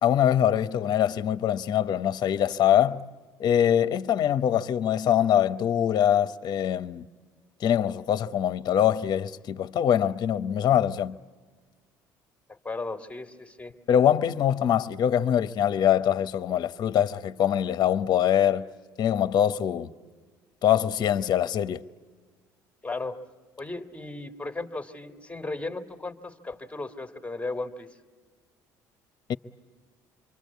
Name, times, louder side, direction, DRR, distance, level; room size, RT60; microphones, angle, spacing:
voice 1, 0.0-3.0 3.4-7.1 7.6-11.2 13.9-18.6 19.0-19.9 20.6-21.8 29.3-29.4, left 10 dB, 55° left, 0.8 m, -23 dB
voice 2, 12.6-13.7 22.8-23.2 23.6-27.9, left 3 dB, 15° left, 1.8 m, -35 dB
27.5 x 24.0 x 8.3 m
supercardioid pair, 75°, 8 cm